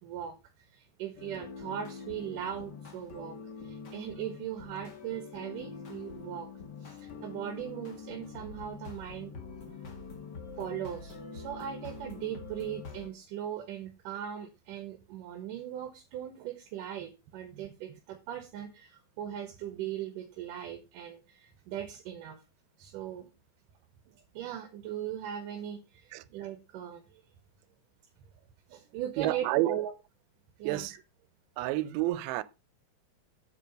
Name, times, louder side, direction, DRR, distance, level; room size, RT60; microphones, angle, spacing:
voice 1, 0.0-6.5 6.8-9.3 10.6-22.4 22.8-23.3 24.1-27.2 28.7-29.9 30.6-30.9, right 10 dB, 70° right, 2.5 m, -39 dB
sound 1, 1.2-13.1, left 5 dB, 35° left, 1.9 m, -45 dB
voice 2, 29.2-29.8 30.6-31.0 31.6-32.4, right 16 dB, 90° right, 2.5 m, -30 dB
8.5 x 7.2 x 5.1 m
omnidirectional pair, 4.2 m